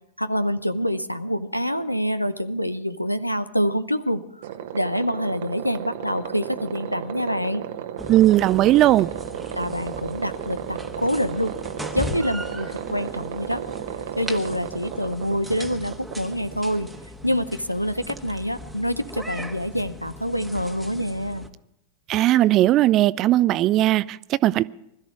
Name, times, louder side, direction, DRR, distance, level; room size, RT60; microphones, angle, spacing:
voice 1, 0.2-4.4 4.7-7.6 9.5-11.5 11.9-13.6 14.2-16.9 17.2-21.5, equal, 90° left, 0.7 m, -26 dB
sound 1, 4.4-17.0, right 10 dB, 55° right, 1.1 m, -34 dB
sound 2, 8.0-21.5, left 1 dB, 5° right, 1.4 m, -38 dB
voice 2, 8.1-9.1 22.1-24.6, right 14 dB, 35° right, 0.5 m, -18 dB
20.5 x 13.0 x 4.8 m
figure-of-eight pair, 90°, 0 cm